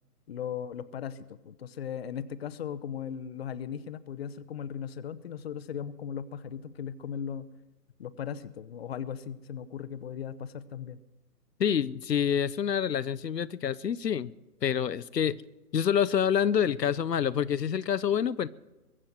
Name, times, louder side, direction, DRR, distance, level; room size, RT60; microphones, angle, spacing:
voice 1, 0.3-1.2 1.4-7.5 8.0-11.0, left 8 dB, 40° left, 0.7 m, -37 dB
voice 2, 11.6-14.3 14.6-15.4 15.7-18.5, left 8 dB, 80° left, 0.8 m, -27 dB
22.5 x 7.5 x 8.0 m
figure-of-eight pair, 135°, 48 cm